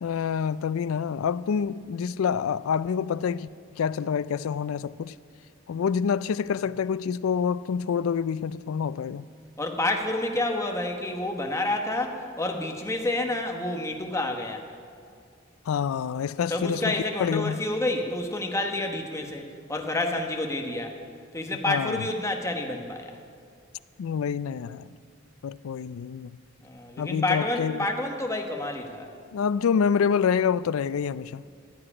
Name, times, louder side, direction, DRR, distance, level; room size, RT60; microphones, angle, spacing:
voice 1, 0.0-5.1 5.7-9.3 15.7-16.9 17.2-17.6 21.7-22.1 24.0-24.9 25.4-26.3 27.0-27.9 29.3-31.4, left 7 dB, 85° left, 0.4 m, -27 dB
voice 2, 9.6-14.7 16.5-19.4 19.7-21.0 21.3-23.2 26.6-29.1, left 2 dB, 15° left, 1.2 m, -29 dB
14.5 x 7.8 x 9.9 m
head